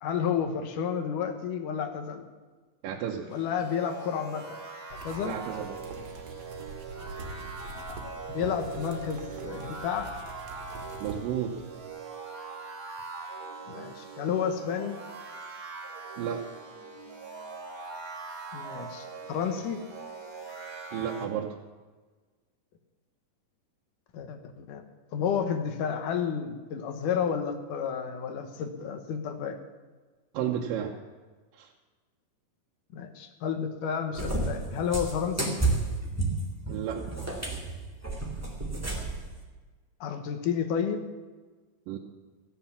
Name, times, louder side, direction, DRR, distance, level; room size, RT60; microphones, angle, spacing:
voice 1, 0.0-2.2 3.3-4.6 4.9-5.4 8.3-10.1 13.7-15.0 18.5-19.8 21.2-21.3 24.1-24.8 25.1-29.6 32.9-35.6 40.0-41.0, left 7 dB, 70° left, 7 dB, 2.6 m, -31 dB
voice 2, 2.8-3.3 5.2-5.8 11.0-11.6 16.2-16.5 20.9-21.6 30.3-30.9 31.5-31.7 36.7-37.2 41.9-42.0, right 9 dB, 80° right, 0 dB, 2.5 m, -32 dB
sound 1, 3.3-21.3, right 4 dB, 30° right, 2.7 m, -42 dB
sound 2, 4.9-11.9, right 3 dB, 50° right, 2.4 m, -44 dB
Cat, 34.2-39.3, right 2 dB, 5° right, 1.5 m, -31 dB
15.0 x 10.0 x 7.0 m, 1.4 s
omnidirectional pair, 4.0 m